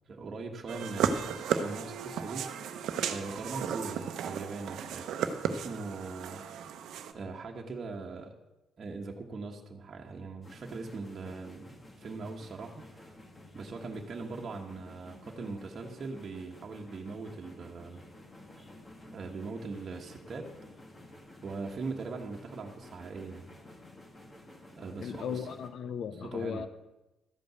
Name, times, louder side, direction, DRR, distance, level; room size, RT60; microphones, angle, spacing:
voice 1, 0.1-2.5 3.1-5.0 5.5-6.4 7.1-8.3 8.8-13.1 13.5-18.0 19.1-20.5 21.4-23.4 24.8-25.5 26.2-26.7, right 3 dB, 45° right, 0 dB, 1.3 m, -41 dB
sound 1, 0.7-7.1, right 7 dB, 80° right, 0.8 m, -34 dB
sound 2, 10.4-25.7, left 1 dB, 25° left, 1.9 m, -52 dB
voice 2, 25.0-26.7, left 7 dB, 65° left, 12 dB, 0.7 m, -36 dB
13.0 x 5.2 x 7.9 m, 1.0 s
cardioid pair, 90°, 0 cm